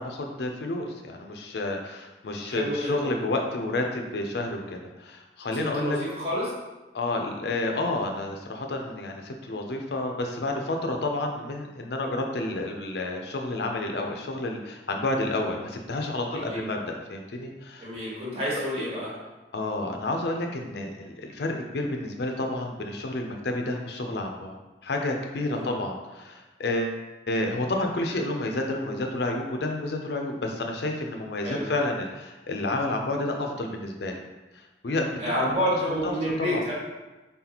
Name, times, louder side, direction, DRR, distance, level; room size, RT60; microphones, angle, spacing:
voice 1, 0.0-6.0 6.9-17.9 19.5-24.6 24.8-27.0 27.3-34.2 34.5-35.5 36.0-36.1 36.4-36.6, left 2 dB, 65° left, 2 dB, 0.5 m, -30 dB
voice 2, 2.4-3.1 5.5-6.5 16.3-16.7 17.8-19.1 25.4-25.8 31.4-31.7 35.2-36.7, equal, 35° right, -7 dB, 1.4 m, -29 dB
4.0 x 3.8 x 2.9 m, 1.1 s
head